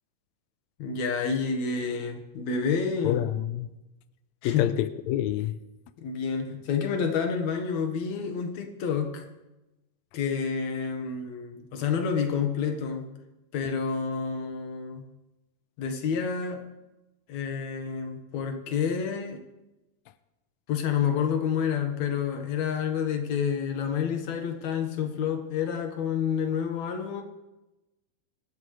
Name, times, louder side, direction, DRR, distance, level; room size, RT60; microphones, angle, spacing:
voice 1, 0.8-3.2 4.4-4.6 6.0-9.3 10.1-13.1 13.5-15.0 15.8-16.6 17.3-19.4 20.7-27.2, left 6 dB, 60° left, 4 dB, 2.6 m, -29 dB
voice 2, 3.0-3.7 4.4-5.6, left 12 dB, 85° left, 12 dB, 1.6 m, -27 dB
24.5 x 12.5 x 3.3 m, 1.0 s
omnidirectional pair, 3.9 m